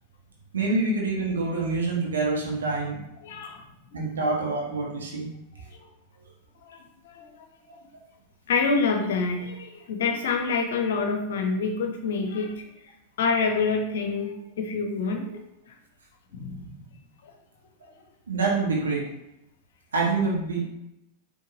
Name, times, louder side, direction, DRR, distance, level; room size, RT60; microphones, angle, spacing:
voice 1, 0.5-3.0 3.9-5.3 18.3-19.1 19.9-20.7, right 3 dB, 70° right, -3 dB, 1.1 m, -26 dB
voice 2, 3.2-3.7 3.9-4.1 5.7-5.9 6.6-7.4 8.5-12.9 13.2-15.3 15.7-15.8 16.3-16.8 17.2-17.3, left 4 dB, 60° left, 4 dB, 0.8 m, -27 dB
5.6 x 3.3 x 2.6 m, 0.86 s
figure-of-eight pair, 90°, 0 cm